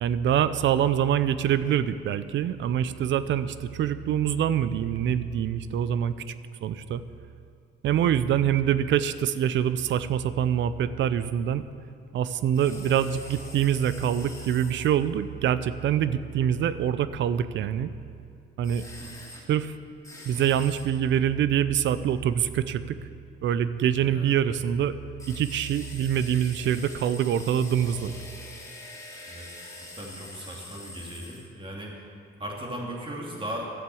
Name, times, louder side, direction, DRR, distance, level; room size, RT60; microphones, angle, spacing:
voice 1, 0.0-6.1 6.6-7.0 7.8-11.6 12.1-17.9 18.6-18.8 19.5-19.7 20.3-23.0 23.4-24.9 25.3-28.1, right 9 dB, 70° right, 14 dB, 0.6 m, -25 dB
sound 1, 12.5-14.9 18.6-19.4 20.0-20.9 25.2-31.5, left 1 dB, 15° left, 2.5 m, -44 dB
voice 2, 23.9-24.4 29.3-32.1 32.4-33.7, right 1 dB, 25° right, -2 dB, 2.8 m, -38 dB
12.5 x 8.1 x 6.9 m, 2.4 s
cardioid pair, 90°, 20 cm